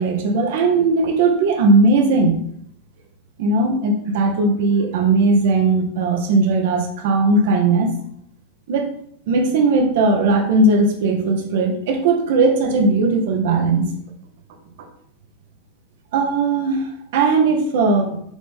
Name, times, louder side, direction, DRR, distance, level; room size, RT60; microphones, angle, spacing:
voice 1, 0.0-2.4 3.4-7.9 8.7-9.0 9.3-13.9 16.1-18.2, right 3 dB, 50° right, 4 dB, 1.0 m, -18 dB
6.2 x 4.1 x 3.8 m, 0.68 s
figure-of-eight pair, 90°, 0 cm